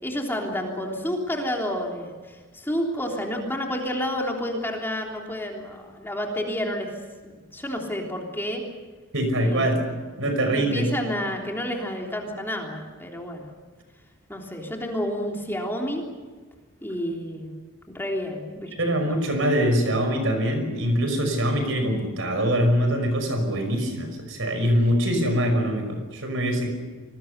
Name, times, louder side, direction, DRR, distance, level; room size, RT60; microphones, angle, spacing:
voice 1, 0.0-6.9 7.2-8.6 9.4-9.8 10.5-13.5 14.3-16.0 16.8-17.5 17.9-18.7 19.0-19.4, equal, 10° left, 0 dB, 3.4 m, -30 dB
voice 2, 9.1-9.8 10.2-10.9 18.8-26.7, equal, 65° right, 6 dB, 5.7 m, -23 dB
28.5 x 20.5 x 6.8 m, 1.4 s
head